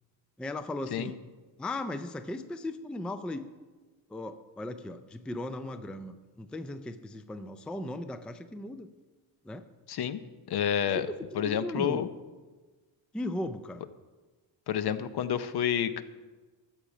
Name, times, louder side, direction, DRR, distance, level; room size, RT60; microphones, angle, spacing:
voice 1, 0.4-1.2 1.6-3.5 4.1-8.9 9.4-9.6 10.8-12.1 13.1-13.9, left 1 dB, ahead, 10 dB, 0.4 m, -37 dB
voice 2, 9.9-10.2 10.5-11.1 11.4-12.1 14.7-16.0, left 9 dB, 55° left, 12 dB, 0.7 m, -29 dB
13.0 x 7.2 x 5.0 m, 1.3 s
cardioid pair, 105°, 46 cm